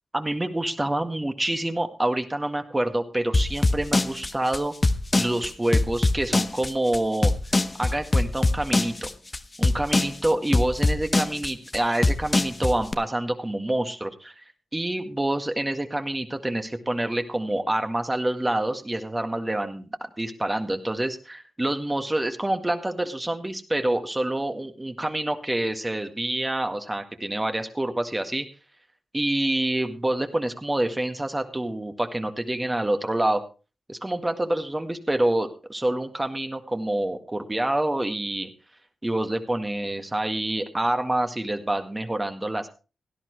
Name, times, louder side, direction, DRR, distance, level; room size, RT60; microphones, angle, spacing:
voice 1, 0.1-4.7 5.1-7.3 7.8-9.1 9.6-14.3 14.7-28.5 29.1-33.5 33.9-38.5 39.0-42.7, right 1 dB, 20° right, 7 dB, 1.9 m, -27 dB
sound 1, 3.3-12.9, left 2 dB, 35° left, 1.0 m, -22 dB
17.0 x 11.0 x 3.2 m, 0.32 s
cardioid pair, 45°, 0 cm